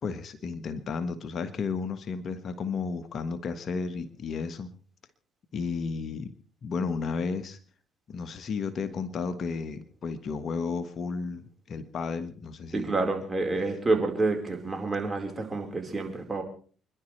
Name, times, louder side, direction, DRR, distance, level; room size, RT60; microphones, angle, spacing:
voice 1, 0.0-4.7 5.5-6.3 6.6-7.6 8.1-12.9, left 5 dB, 55° left, 9 dB, 1.5 m, -33 dB
voice 2, 12.7-16.4, right 3 dB, 20° right, 3 dB, 4.6 m, -28 dB
29.0 x 11.5 x 3.3 m, 0.41 s
supercardioid pair, 70°, 0 cm